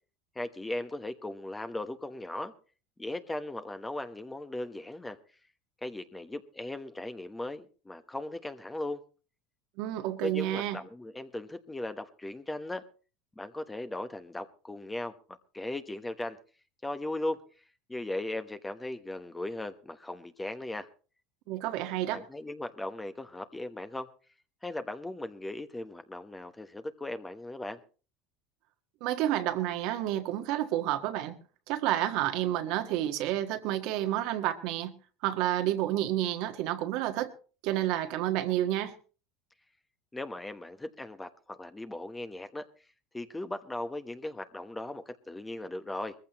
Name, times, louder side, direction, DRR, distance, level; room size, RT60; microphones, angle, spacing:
voice 1, 0.3-2.5 3.0-5.2 5.8-9.0 10.2-12.8 13.4-15.2 15.5-16.4 16.8-17.4 17.9-20.9 22.1-24.1 24.6-27.8 40.1-42.6 43.1-46.1, left 1 dB, 10° left, 1.0 m, -37 dB
voice 2, 9.8-10.8 21.5-22.2 29.0-31.3 31.7-34.9 35.2-37.3 37.6-38.9, right 13 dB, 65° right, 1.5 m, -30 dB
21.0 x 14.5 x 3.0 m
supercardioid pair, 110°, 0 cm